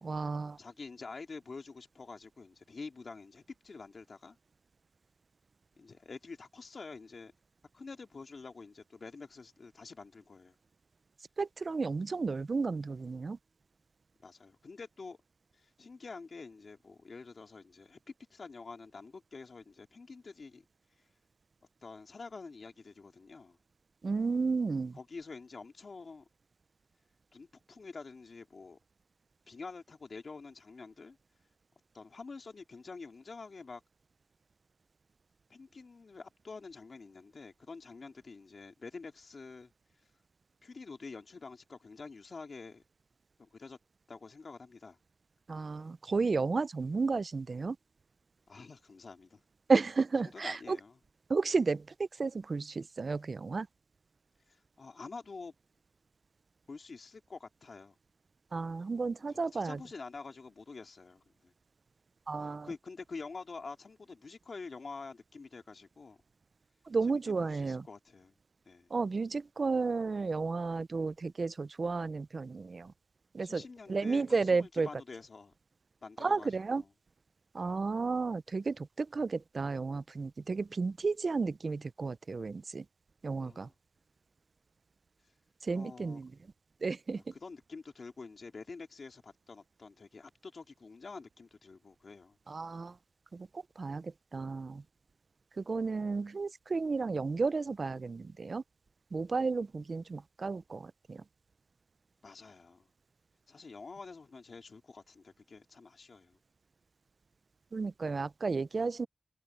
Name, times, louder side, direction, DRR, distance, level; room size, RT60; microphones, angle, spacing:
voice 1, 0.0-0.6 11.4-13.4 24.0-25.0 45.5-47.8 49.7-50.8 51.3-53.7 58.5-59.8 62.3-62.7 66.9-67.9 68.9-72.9 73.3-73.6 73.9-74.9 76.2-76.8 77.5-82.8 83.2-83.7 85.6-86.3 86.8-87.3 92.5-93.0 93.3-94.8 95.6-98.6 99.1-101.2 107.7-109.1, right 4 dB, 70° right, 0.4 m, -32 dB
voice 2, 0.6-4.4 5.8-7.3 7.7-10.5 14.2-15.2 15.5-18.0 18.3-20.6 21.8-23.6 24.9-26.3 27.3-28.8 29.5-31.2 31.9-33.8 35.5-39.7 40.6-42.8 43.4-43.8 44.1-45.0 48.5-49.4 50.3-50.9 54.5-55.5 56.7-58.0 59.3-61.5 62.4-66.2 67.1-68.3 68.7-68.9 73.4-75.5 76.0-76.9 77.6-77.7 83.4-83.7 85.7-86.2 87.1-92.4 102.2-102.9 103.5-106.4, left 4 dB, 75° left, 2.3 m, -47 dB
wide cardioid pair, 85°, 0 cm